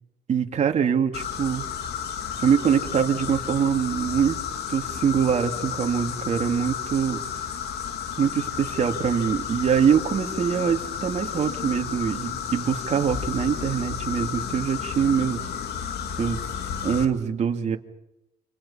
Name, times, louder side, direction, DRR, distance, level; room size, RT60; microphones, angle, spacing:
voice 1, 0.3-1.6 2.4-4.4 4.7-7.2 8.2-15.4 16.2-16.4 16.8-17.8, right 7 dB, 45° right, 4 dB, 2.7 m, -23 dB
sound 1, 1.1-17.1, left 8 dB, 70° left, 2.9 m, -32 dB
29.5 x 28.0 x 5.8 m, 0.88 s
cardioid pair, 110°, 17 cm